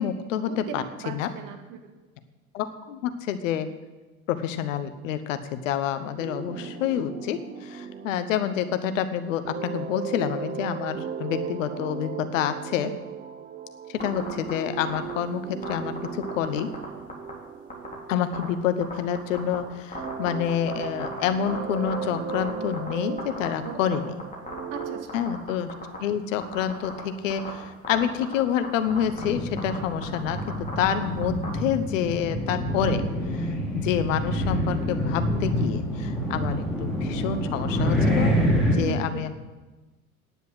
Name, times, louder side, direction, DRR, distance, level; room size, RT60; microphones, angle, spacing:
voice 1, 0.0-1.3 2.5-3.7 4.3-12.9 13.9-16.7 18.1-24.2 25.1-25.7 26.0-33.0 33.4-38.3 38.7-39.3, left 9 dB, 60° left, 10 dB, 1.1 m, -28 dB
voice 2, 1.0-1.9 23.6-23.8 24.7-25.0 38.8-39.3, right 7 dB, 45° right, 4 dB, 2.1 m, -36 dB
sound 1, 6.2-19.5 19.9-25.1, right 7 dB, 20° right, 0.8 m, -37 dB
sound 2, 14.0-14.5 14.9-15.1 15.6-16.8 17.1-17.3 17.7-17.9 18.3-18.4 18.8-19.6 19.9-22.9 23.2-23.9 24.2-24.8 25.1-26.0 26.4-27.0 27.3-27.5 27.8-28.3 28.6-28.7 28.9-29.2 29.6-31.5, left 3 dB, 20° left, 4.1 m, -35 dB
sound 3, 28.9-38.8, equal, ahead, 3.8 m, -27 dB
10.0 x 8.0 x 8.0 m, 1.2 s
figure-of-eight pair, 85°, 44 cm